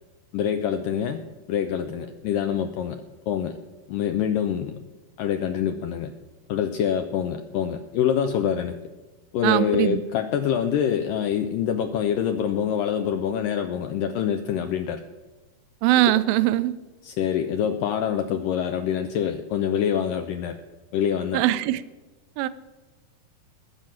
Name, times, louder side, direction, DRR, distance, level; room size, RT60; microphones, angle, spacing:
voice 1, 0.3-1.2 1.5-3.6 3.9-4.8 5.2-6.1 6.5-8.8 9.3-15.0 16.1-16.2 17.0-20.6 20.9-21.4, left 8 dB, 85° left, 7 dB, 2.0 m, -25 dB
voice 2, 9.4-10.0 15.8-16.8 21.3-21.8 22.4-22.5, right 15 dB, 80° right, 15 dB, 2.2 m, -21 dB
20.0 x 7.6 x 5.8 m, 1.2 s
omnidirectional pair, 4.6 m